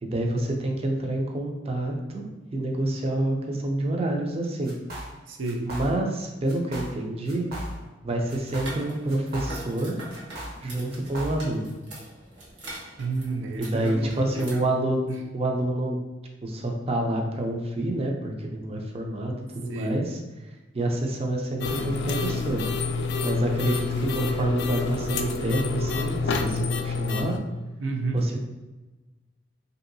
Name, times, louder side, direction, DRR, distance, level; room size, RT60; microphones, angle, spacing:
voice 1, 0.0-2.2 2.5-4.7 5.6-7.5 8.0-10.0 10.6-11.7 13.6-16.0 16.4-20.2 20.7-22.6 23.2-27.4 28.1-28.4, right 1 dB, 35° right, 2 dB, 0.4 m, -28 dB
sound 1, 4.6-5.2 5.4-6.2 6.5-7.0 7.3-8.0 8.3-9.8 10.1-11.6, equal, 55° right, 0.8 m, -37 dB
voice 2, 5.3-5.6 13.0-14.7 15.1-15.2 19.7-20.0 27.8-28.2, right 3 dB, 90° right, 2 dB, 0.5 m, -31 dB
sound 2, 8.4-14.5, right 1 dB, 70° right, 1.1 m, -43 dB
sound 3, 21.6-27.4, left 4 dB, 65° left, 0.3 m, -28 dB
3.0 x 2.7 x 2.6 m, 1.2 s
head